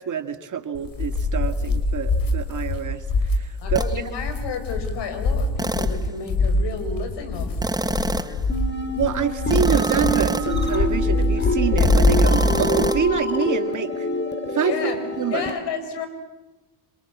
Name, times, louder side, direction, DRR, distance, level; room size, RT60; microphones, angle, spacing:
voice 1, 0.0-4.0 9.0-14.1 14.5-15.4, right 7 dB, 45° right, 9 dB, 2.1 m, -26 dB
sound 1, 0.7-13.1, left 2 dB, 50° left, 4.9 m, -23 dB
voice 2, 3.6-7.6 7.8-8.4 14.6-15.0 15.3-16.1, left 5 dB, 65° left, 9 dB, 5.7 m, -32 dB
sound 2, 3.7-4.0 5.6-6.1 7.6-8.4 9.5-10.6 11.8-13.0, right 2 dB, 10° right, 1.1 m, -26 dB
sound 3, 8.5-15.5, equal, 25° left, 3.2 m, -26 dB
27.0 x 27.0 x 7.3 m, 1.1 s
supercardioid pair, 75°, 44 cm